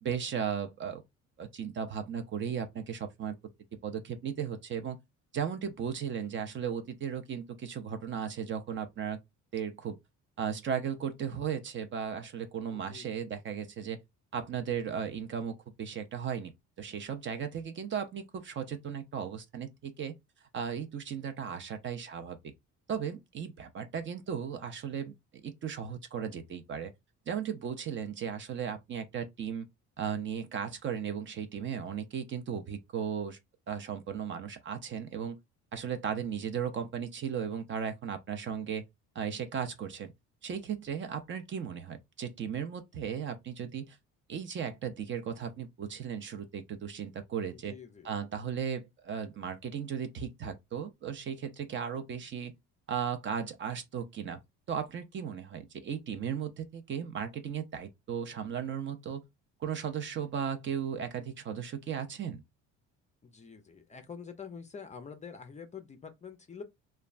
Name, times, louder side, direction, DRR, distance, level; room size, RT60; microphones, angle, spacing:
voice 1, 0.0-1.0 1.4-3.4 3.8-5.0 5.3-9.2 9.5-10.0 10.4-14.0 14.3-16.5 16.8-20.1 20.5-22.4 22.9-25.1 25.4-26.9 27.3-29.7 30.0-33.4 33.7-35.4 35.7-38.8 39.1-40.1 40.4-44.0 44.3-47.7 48.0-52.5 52.9-54.4 54.7-59.2 59.6-62.4, right 7 dB, 40° right, 0.5 m, -36 dB
voice 2, 12.7-13.1 47.5-48.1 63.2-66.6, left 6 dB, 20° left, 0.4 m, -46 dB
3.1 x 2.2 x 2.3 m
cardioid pair, 120°, 32 cm